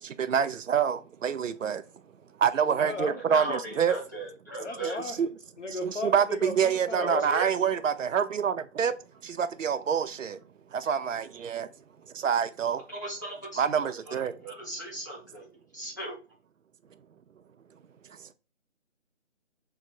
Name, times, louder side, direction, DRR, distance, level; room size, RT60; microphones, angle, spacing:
voice 1, 0.0-1.8 2.4-4.0 5.1-5.3 5.8-9.0 9.2-10.4 10.7-11.7 12.1-12.8 13.6-14.4 18.0-18.3, right 7 dB, 90° right, 0.5 m, -27 dB
voice 2, 2.6-3.5 4.6-5.2 5.6-7.2, left 2 dB, 70° left, 1.0 m, -36 dB
voice 3, 3.3-5.0 7.0-7.5 12.9-15.5 15.7-16.2, right 1 dB, 15° left, 0.7 m, -37 dB
3.2 x 2.1 x 4.1 m
figure-of-eight pair, 160°, 38 cm